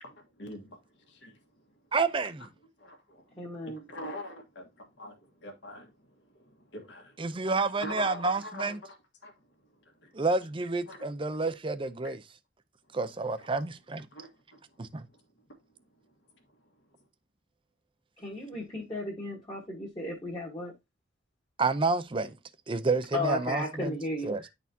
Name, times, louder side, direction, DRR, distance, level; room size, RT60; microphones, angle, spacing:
voice 1, 1.1-1.4 2.8-3.2 3.9-5.9 6.4-7.2 7.8-9.0 9.2-9.3 10.0-10.1 10.9-11.1 13.4-13.5 14.1-14.6, left 1 dB, 60° left, 1.6 m, -43 dB
voice 2, 1.9-2.5 7.2-8.8 10.1-12.2 12.9-14.0 14.8-15.0 21.6-22.4 22.7-23.9 24.3-24.4, right 3 dB, 25° right, 0.5 m, -29 dB
voice 3, 3.3-3.8 18.2-20.7 23.1-24.5, left 1 dB, 20° left, 1.4 m, -35 dB
10.5 x 4.2 x 2.7 m
head